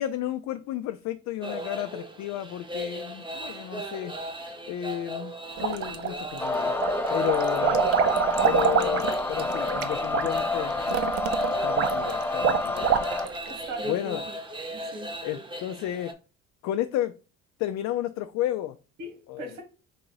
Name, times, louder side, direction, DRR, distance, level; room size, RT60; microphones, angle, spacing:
voice 1, 0.0-4.1 4.7-5.3 5.6-6.7 7.1-7.8 8.4-11.1 11.5-12.9 13.9-14.2 15.2-16.1 16.6-17.1 17.6-18.8 19.3-19.6, left 12 dB, 70° left, 0.4 m, -32 dB
sound 1, 1.4-16.1, equal, 15° right, 0.8 m, -37 dB
sound 2, 5.6-6.4 6.8-13.5, right 8 dB, 55° right, 0.6 m, -26 dB
sound 3, 6.4-13.3, left 2 dB, 10° left, 0.4 m, -28 dB
voice 2, 13.5-14.3 14.7-15.1 19.0-19.6, right 2 dB, 75° right, 1.7 m, -37 dB
3.8 x 2.6 x 4.7 m
cardioid pair, 100°, 29 cm